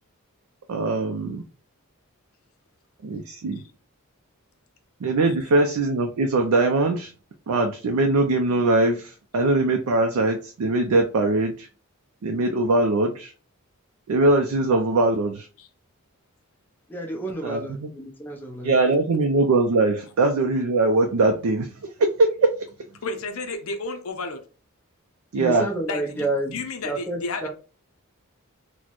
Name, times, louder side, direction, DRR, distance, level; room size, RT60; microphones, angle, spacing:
voice 1, 0.7-1.4 3.0-3.6 5.0-7.1 7.5-11.7 12.2-13.3 14.1-15.5 17.4-17.9 18.6-22.6 25.3-25.7, right 2 dB, 80° right, 0.4 m, -21 dB
voice 2, 16.9-18.7 25.4-26.6 26.8-27.5, right 2 dB, 10° left, 0.5 m, -30 dB
voice 3, 23.0-24.4 25.9-27.5, left 3 dB, 70° left, 0.5 m, -32 dB
4.1 x 2.1 x 2.9 m
head